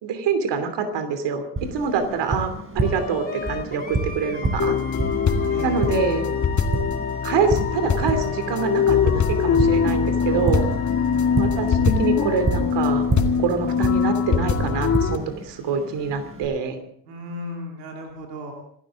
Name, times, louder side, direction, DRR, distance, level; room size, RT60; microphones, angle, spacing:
voice 1, 0.0-4.8 5.6-6.3 7.2-10.7 11.4-13.1 13.4-16.8, right 6 dB, 65° right, 8 dB, 3.0 m, -25 dB
Tap, 1.6-16.5, right 2 dB, 25° right, 5.7 m, -30 dB
Wind instrument woodwind instrument, 2.8-12.7, left 5 dB, 20° left, 2.9 m, -37 dB
sound 1, 4.6-15.2, left 6 dB, 40° left, 2.0 m, -22 dB
voice 2, 5.4-6.0 10.8-11.6 17.0-18.5, left 1 dB, 85° right, 1 dB, 2.8 m, -37 dB
26.5 x 13.0 x 3.7 m, 0.67 s
hypercardioid pair, 55°, 46 cm